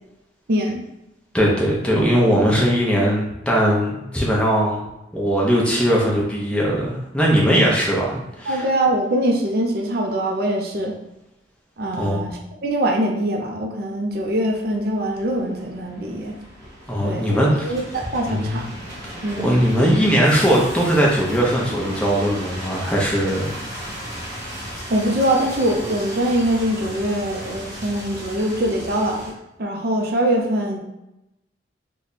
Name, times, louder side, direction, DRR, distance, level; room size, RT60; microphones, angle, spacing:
voice 1, 0.5-0.8 8.5-11.0 11.8-16.4 17.0-18.7 19.2-19.5 24.9-29.3 29.6-30.8, right 1 dB, 60° right, 1 dB, 0.5 m, -23 dB
voice 2, 1.3-4.8 5.1-8.6 11.9-12.2 16.9-17.7 18.3-18.6 19.4-23.5, equal, 5° left, -4 dB, 0.7 m, -19 dB
sound 1, 14.1-29.3, equal, 20° right, 1.1 m, -35 dB
3.2 x 2.2 x 4.0 m, 0.89 s
head